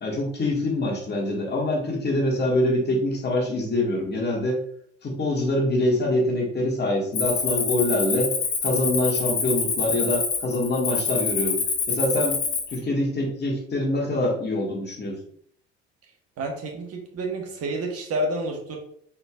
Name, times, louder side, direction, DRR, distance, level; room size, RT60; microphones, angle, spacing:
voice 1, 0.0-4.6 5.0-8.3 8.6-11.6 11.9-12.4 12.7-15.2, left 1 dB, 30° left, -2 dB, 1.9 m, -25 dB
Cricket, 7.1-12.8, left 5 dB, 45° left, 1.4 m, -26 dB
voice 2, 16.4-18.8, right 1 dB, 45° right, 1 dB, 1.4 m, -29 dB
4.6 x 4.3 x 2.4 m, 0.64 s
hypercardioid pair, 60°, 34 cm